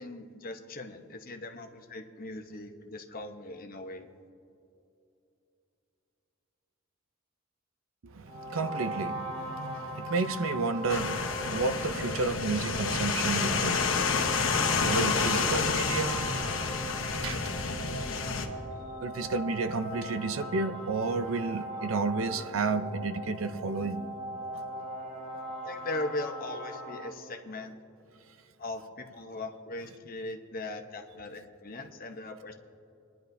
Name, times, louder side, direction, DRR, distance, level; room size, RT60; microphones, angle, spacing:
voice 1, 0.0-4.1 25.6-27.8 28.6-32.6, left 2 dB, 45° left, 0.9 m, -39 dB
voice 2, 8.0-17.0 17.2-17.7 19.0-24.1 24.5-24.6, right 4 dB, 85° right, 0.6 m, -32 dB
sound 1, 8.3-27.1, equal, 30° right, 2.8 m, -39 dB
sound 2, 10.9-18.5, left 5 dB, 75° left, 1.1 m, -29 dB
25.0 x 10.5 x 2.7 m
head